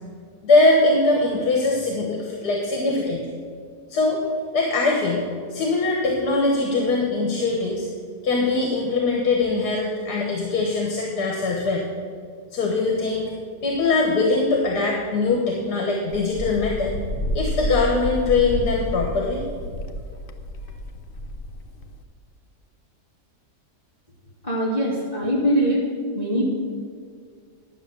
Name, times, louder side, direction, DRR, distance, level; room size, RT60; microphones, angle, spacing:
voice 1, 0.4-3.2 3.9-4.2 4.5-7.9 8.2-11.9 12.5-13.3 13.6-16.9 17.3-19.4, left 3 dB, 75° left, -1 dB, 1.8 m, -22 dB
Wind, 16.1-22.0, equal, 55° left, 0.6 m, -30 dB
voice 2, 24.4-25.9 26.1-26.5, equal, 25° left, -5 dB, 1.8 m, -22 dB
10.5 x 7.1 x 6.8 m, 2.1 s
omnidirectional pair, 1.8 m